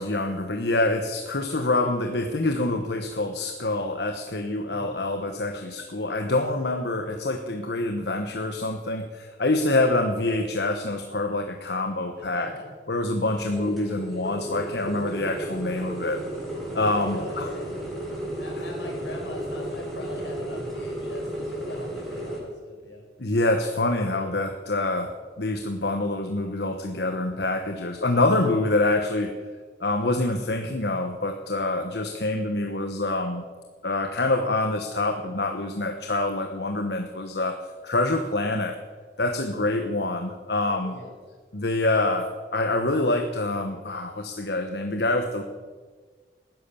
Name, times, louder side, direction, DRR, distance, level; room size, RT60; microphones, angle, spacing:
voice 1, 0.0-12.5 12.9-16.2 16.7-17.5 23.2-29.3 29.8-33.4 33.8-38.8 39.2-41.0 41.5-45.4, left 2 dB, 70° left, 5 dB, 1.1 m, -26 dB
voice 2, 4.7-5.0 12.3-12.7 17.1-17.7 18.4-23.0 40.7-41.1, left 1 dB, 85° left, 0 dB, 5.2 m, -41 dB
sound 1, 13.2-22.4, right 1 dB, ahead, 6.8 m, -33 dB
19.0 x 11.0 x 6.9 m, 1.5 s
head